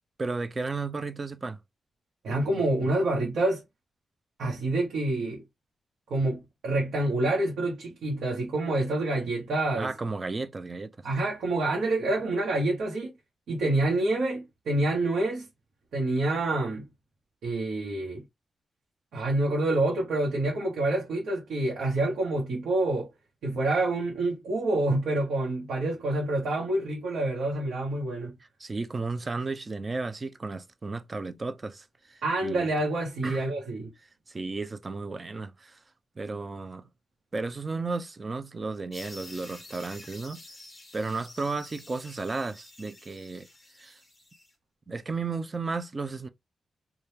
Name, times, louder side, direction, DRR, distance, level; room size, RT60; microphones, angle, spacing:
voice 1, 0.2-1.6 9.7-11.1 28.6-32.7 33.2-33.4 34.3-35.8 36.2-36.9 37.3-40.4 40.9-43.5 43.8-44.0 44.9-46.3, right 3 dB, 30° right, 0.4 m, -34 dB
voice 2, 2.2-3.6 4.4-5.4 6.1-9.9 11.0-13.1 13.5-15.5 15.9-16.9 17.4-18.2 19.1-23.1 23.4-28.3 32.2-33.9, right 2 dB, 85° right, 1.0 m, -27 dB
sound 1, 38.9-44.5, left 2 dB, 20° left, 1.4 m, -49 dB
3.3 x 2.3 x 2.8 m
cardioid pair, 105°, 0 cm